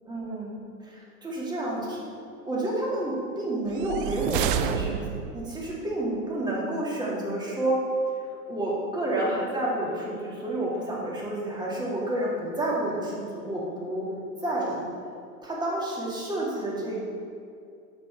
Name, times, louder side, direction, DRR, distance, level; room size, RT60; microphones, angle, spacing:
voice 1, 0.1-2.0 2.5-5.0 5.3-7.8 8.5-14.1 14.4-14.9 15.4-17.0, right 1 dB, 10° right, -4 dB, 1.8 m, -30 dB
sound 1, 3.7-5.5, right 8 dB, 40° right, 0.4 m, -29 dB
12.0 x 4.2 x 4.3 m, 2.4 s
hypercardioid pair, 120°, 44 cm